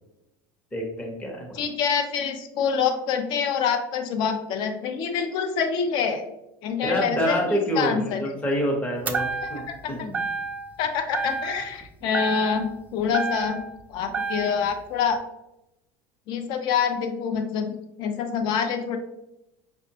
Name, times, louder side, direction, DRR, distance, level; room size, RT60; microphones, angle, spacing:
voice 1, 0.7-1.6 6.8-10.2, equal, 15° left, 0 dB, 0.7 m, -27 dB
voice 2, 1.5-6.2 6.6-7.4 7.8-8.3 9.4-10.1 10.8-13.6 13.9-15.2 16.3-19.0, left 6 dB, 50° left, 7 dB, 0.5 m, -26 dB
sound 1, 9.1-9.8 10.1-10.8 11.1-11.8 12.1-13.8 14.1-14.8, right 4 dB, 15° right, 0.3 m, -30 dB
5.1 x 2.1 x 2.7 m, 0.88 s
supercardioid pair, 140°, 10 cm